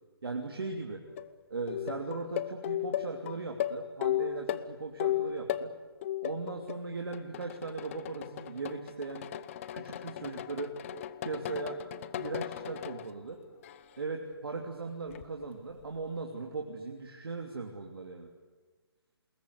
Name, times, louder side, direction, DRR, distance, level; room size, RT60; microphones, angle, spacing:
voice 1, 0.2-1.0 1.5-5.7 6.2-9.3 9.7-10.8 11.2-11.8 12.1-13.4 14.0-18.3, right 3 dB, 65° right, 2 dB, 3.0 m, -38 dB
sound 1, 1.1-1.3 1.7-5.7 6.0-6.8 7.1-13.1 13.6-14.0 15.1-15.2, left 11 dB, 30° left, 0.9 m, -35 dB
27.0 x 21.0 x 8.2 m, 1.3 s
figure-of-eight pair, 145°, 13 cm